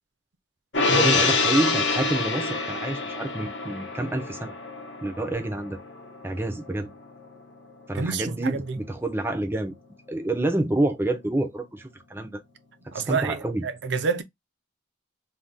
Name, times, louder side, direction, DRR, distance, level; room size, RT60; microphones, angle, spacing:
Gong, 0.7-7.4 7.7-7.8, left 3 dB, 65° left, 0.8 m, -27 dB
voice 1, 0.9-4.5 5.0-5.8 6.2-6.9 7.9-9.7 10.1-12.4 12.9-13.6, right 2 dB, 10° right, 0.5 m, -28 dB
voice 2, 7.9-8.8 12.9-14.2, right 5 dB, 60° right, 0.5 m, -28 dB
2.6 x 2.2 x 3.4 m
head